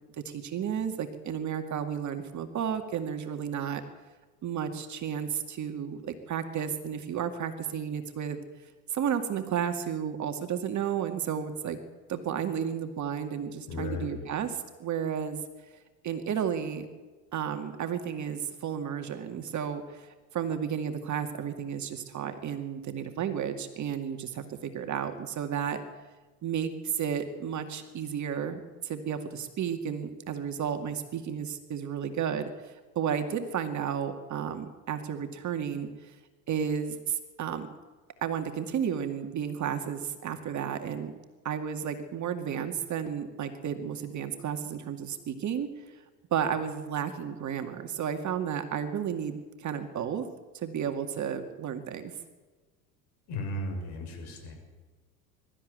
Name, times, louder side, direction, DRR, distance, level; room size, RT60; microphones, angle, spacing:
voice 1, 0.2-3.8 4.4-8.4 8.9-11.8 12.1-15.4 16.0-16.9 17.3-25.8 26.4-36.1 36.5-37.7 38.2-41.1 41.4-45.7 46.3-50.3 50.5-52.1, right 8 dB, 35° right, 6 dB, 2.2 m, -32 dB
voice 2, 13.7-14.3 53.3-54.5, left 2 dB, 55° left, 5 dB, 6.7 m, -35 dB
23.0 x 13.0 x 9.3 m, 1.3 s
hypercardioid pair, 75°, 47 cm